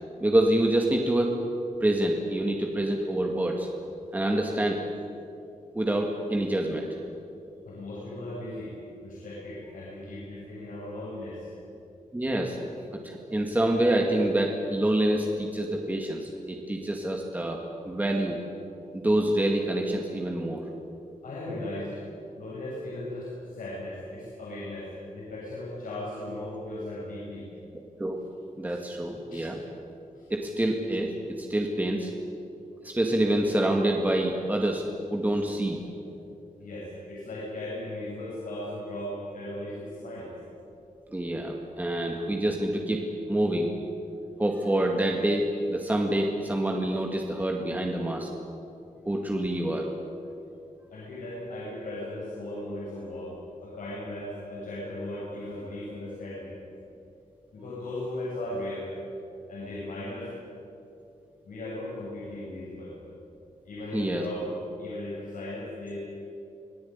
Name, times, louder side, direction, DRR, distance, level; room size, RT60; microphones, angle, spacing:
voice 1, 0.2-1.4 1.8-3.7 4.1-4.8 5.7-6.9 12.1-12.6 12.9-17.6 17.8-18.4 18.9-20.6 28.0-28.2 28.6-29.6 30.3-32.1 32.8-34.9 35.1-35.8 41.1-43.7 44.4-48.3 49.1-49.9 63.9-64.2, right 1 dB, 10° right, 1 dB, 2.1 m, -26 dB
voice 2, 7.6-8.7 9.0-11.5 21.2-22.0 22.4-27.5 28.7-28.8 29.3-29.5 30.1-30.3 35.8-35.9 36.6-40.3 50.9-56.5 57.5-58.9 59.5-60.3 61.4-63.0 63.6-64.4 64.8-66.0, left 1 dB, 75° left, -7 dB, 7.9 m, -37 dB
26.5 x 18.5 x 9.7 m, 2.7 s
wide cardioid pair, 155°, 14 cm